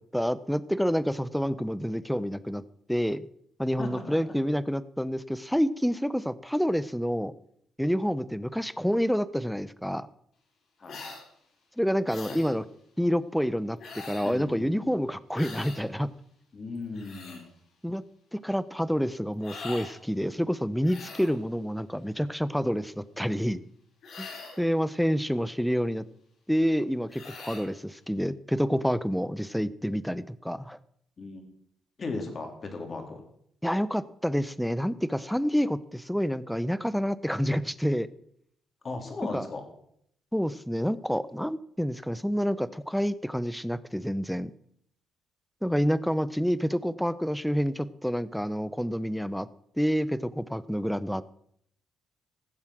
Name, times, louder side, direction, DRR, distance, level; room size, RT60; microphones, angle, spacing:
voice 1, 0.1-2.6 2.9-3.3 3.6-7.3 7.8-10.1 11.8-12.6 13.0-16.1 17.8-18.0 18.3-23.6 24.2-24.3 24.6-26.1 26.5-30.8 33.6-38.1 39.3-39.4 40.3-44.5 45.6-49.5 49.8-51.2, equal, ahead, 17 dB, 0.7 m, -28 dB
voice 2, 3.8-4.3 10.8-11.0 12.3-12.5 14.2-15.0 16.5-17.4 31.2-31.4 32.0-33.2 38.8-39.7, left 3 dB, 40° left, 5 dB, 3.2 m, -37 dB
sound 1, 10.9-11.2 12.1-12.5 13.8-14.4 15.3-15.8 16.8-17.4 19.4-19.9 20.8-21.4 24.0-24.7 27.1-27.7, left 4 dB, 65° left, 4.0 m, -42 dB
16.5 x 7.3 x 6.2 m, 0.68 s
cardioid pair, 90°, 0 cm